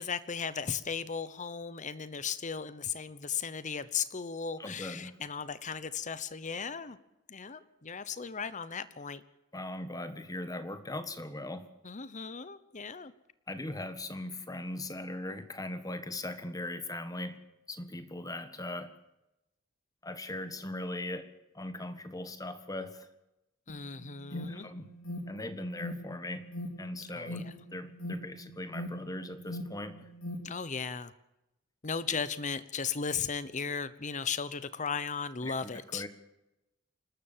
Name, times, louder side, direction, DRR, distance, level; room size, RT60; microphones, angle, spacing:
voice 1, 0.0-7.0 7.3-9.2 11.8-13.1 23.7-24.7 27.1-27.5 30.4-31.1 31.8-36.0, left 6 dB, 35° left, 15 dB, 0.9 m, -36 dB
voice 2, 4.6-5.2 9.5-11.7 13.5-17.4 17.7-18.9 20.0-21.3 21.5-23.1 24.3-24.9 25.3-26.5 26.8-27.4 27.7-30.1 35.4-36.1, left 1 dB, 15° left, 10 dB, 1.6 m, -39 dB
Alarm, 23.7-30.4, left 1 dB, 80° left, 3.0 m, -42 dB
28.5 x 12.5 x 7.4 m, 0.93 s
head